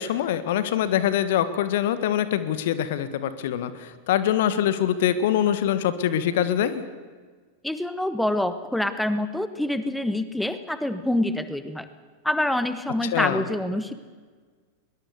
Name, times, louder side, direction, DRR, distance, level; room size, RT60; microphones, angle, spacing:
voice 1, 0.0-6.8 13.0-13.4, left 10 dB, 55° left, 13 dB, 1.5 m, -24 dB
voice 2, 7.6-11.9 12.2-13.9, left 1 dB, 5° left, 11 dB, 1.3 m, -26 dB
22.0 x 21.0 x 6.8 m, 1.5 s
figure-of-eight pair, 90°, 0 cm